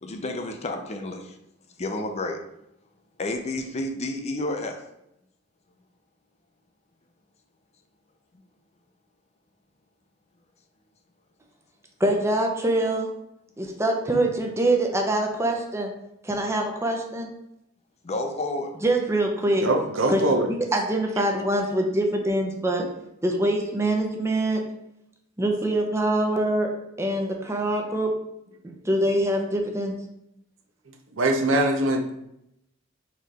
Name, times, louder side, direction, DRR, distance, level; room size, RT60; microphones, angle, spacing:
voice 1, 0.0-1.4 1.8-2.4 3.2-4.8 18.0-18.8, left 2 dB, 35° left, 5 dB, 0.5 m, -30 dB
voice 2, 12.0-13.1 13.6-15.9 16.2-17.3 18.8-19.7 20.1-20.2 20.5-22.8 23.2-24.6 25.4-26.7 27.0-28.1 28.6-30.0, right 1 dB, 15° right, 2 dB, 0.6 m, -24 dB
voice 3, 19.6-20.5 28.7-28.8 31.2-32.2, right 1 dB, 85° right, 3 dB, 0.7 m, -22 dB
4.1 x 3.2 x 4.0 m, 0.81 s
head